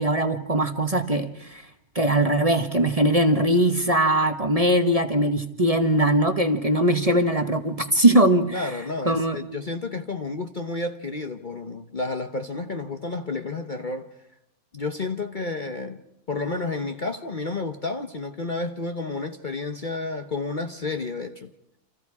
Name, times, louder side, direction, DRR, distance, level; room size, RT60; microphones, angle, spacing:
voice 1, 0.0-1.6 1.9-8.7 9.0-9.4, right 1 dB, 25° right, 1.2 m, -21 dB
voice 2, 8.5-14.1 14.7-16.0 16.3-21.5, left 3 dB, 35° left, 1.0 m, -31 dB
29.0 x 27.0 x 4.8 m
omnidirectional pair, 1.6 m